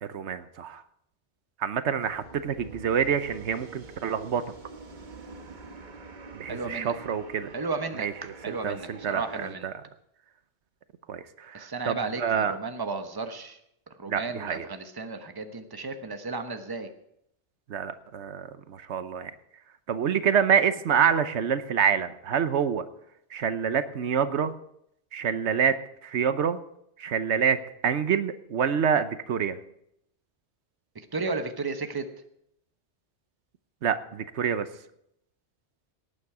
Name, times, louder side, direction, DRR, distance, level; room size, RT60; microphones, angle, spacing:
voice 1, 0.0-0.8 1.6-4.4 6.3-7.5 8.0-8.1 8.5-9.7 11.1-12.5 14.1-14.7 17.7-19.3 19.9-22.8 23.3-24.5 25.1-25.8 26.0-26.6 27.0-27.6 27.8-29.6 33.8-34.7, right 7 dB, 85° right, 12 dB, 1.1 m, -27 dB
sound 1, 2.0-9.5, right 4 dB, 45° right, 1.2 m, -46 dB
voice 2, 6.5-7.0 7.5-9.7 11.5-13.6 14.0-16.9 30.9-32.1, right 3 dB, 20° right, 7 dB, 1.0 m, -34 dB
18.5 x 9.0 x 4.9 m, 0.75 s
omnidirectional pair, 1.1 m